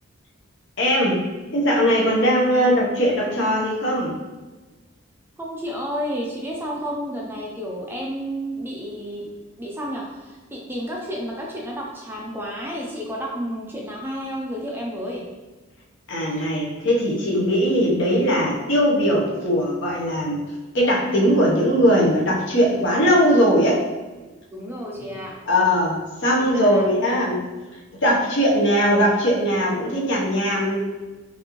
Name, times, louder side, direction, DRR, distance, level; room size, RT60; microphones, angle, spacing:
voice 1, 0.8-1.2 1.5-4.1 16.1-20.4 20.7-23.8 25.5-27.4 28.0-30.8, equal, 55° left, -3 dB, 0.9 m, -20 dB
voice 2, 5.4-9.3 9.6-15.3 24.5-25.4 26.4-26.8, equal, 10° right, -2 dB, 0.4 m, -31 dB
5.1 x 2.6 x 3.0 m, 1.2 s
head